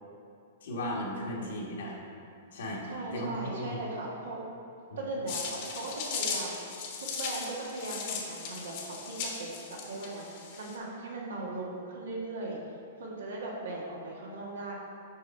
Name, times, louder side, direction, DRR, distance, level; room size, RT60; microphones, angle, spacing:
voice 1, 0.6-2.0 2.5-3.8 4.9-5.1, left 1 dB, 75° left, -3 dB, 1.5 m, -36 dB
voice 2, 1.3-2.0 2.8-4.5 5.0-6.7 7.0-12.6 13.0-14.7, right 2 dB, 80° right, -3 dB, 1.6 m, -38 dB
sound 1, 5.3-10.8, left 5 dB, 50° left, 1.2 m, -37 dB
6.6 x 4.8 x 4.3 m, 2.6 s
hypercardioid pair, 130°, 0 cm